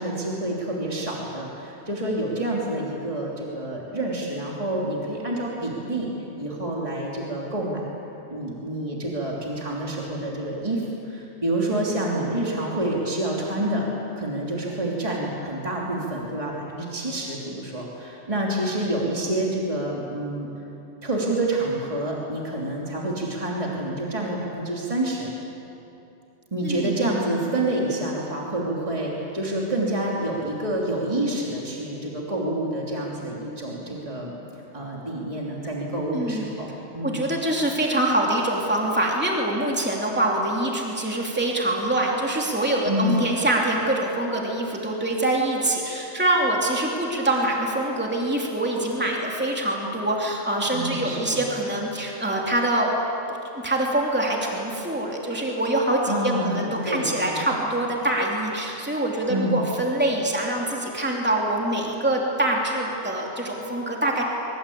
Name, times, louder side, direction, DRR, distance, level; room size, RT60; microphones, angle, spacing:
voice 1, 0.0-6.1 6.4-7.9 8.3-13.9 14.2-20.5 21.0-25.3 26.5-34.3 34.7-37.2 42.8-43.2 50.7-51.5 56.1-57.4 59.3-59.6, right 1 dB, 25° right, -3 dB, 3.1 m, -28 dB
voice 2, 26.6-27.2 36.1-36.5 37.0-52.9 53.3-53.4 53.6-64.2, right 1 dB, 10° right, -2 dB, 3.0 m, -24 dB
24.0 x 23.0 x 8.6 m, 2.9 s
omnidirectional pair, 1.3 m